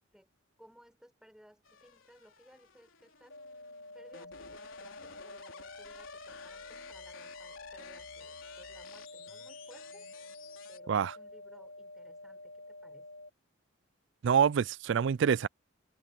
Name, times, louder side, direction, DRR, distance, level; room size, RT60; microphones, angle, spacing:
voice 1, 0.6-3.4 3.9-10.1 10.7-13.1, equal, 5° right, 6.6 m, -60 dB
sound 1, 1.6-10.8, left 6 dB, 80° left, 3.8 m, -52 dB
sound 2, 3.3-13.3, left 2 dB, 60° left, 5.0 m, -49 dB
voice 2, 14.2-15.5, right 7 dB, 60° right, 0.3 m, -26 dB
head